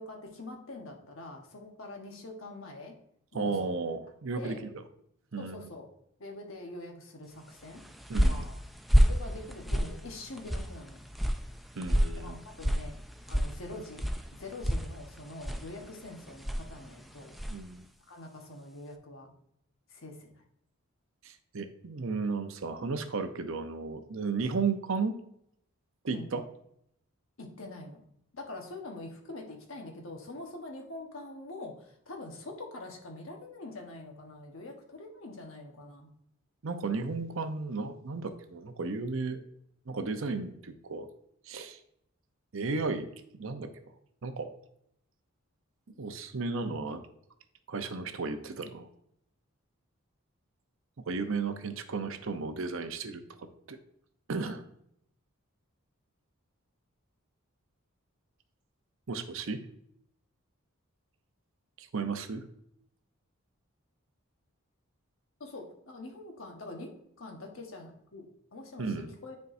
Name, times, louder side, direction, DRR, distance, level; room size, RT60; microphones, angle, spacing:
voice 1, 0.0-3.0 3.3-3.7 4.3-4.6 5.4-5.9 6.2-7.8 8.2-8.6 8.9-11.0 12.2-12.9 13.3-14.0 14.4-17.4 18.1-19.3 19.9-20.4 26.1-26.3 27.4-28.0 28.3-36.1 65.4-66.9 67.2-69.4, left 2 dB, 65° left, 2 dB, 1.2 m, -44 dB
voice 2, 3.3-4.8 5.3-5.7 8.1-8.5 11.8-12.4 17.5-17.9 21.2-25.2 26.0-26.4 36.6-39.4 39.9-41.1 41.5-41.8 42.5-43.1 43.3-43.7 44.2-44.5 46.0-47.0 47.7-48.9 51.1-53.8 54.3-54.6 59.1-59.6 61.8-62.4 68.8-69.1, right 4 dB, 65° right, 8 dB, 0.7 m, -34 dB
sound 1, 7.6-17.7, equal, ahead, 0.3 m, -30 dB
9.5 x 4.6 x 2.6 m, 0.73 s
head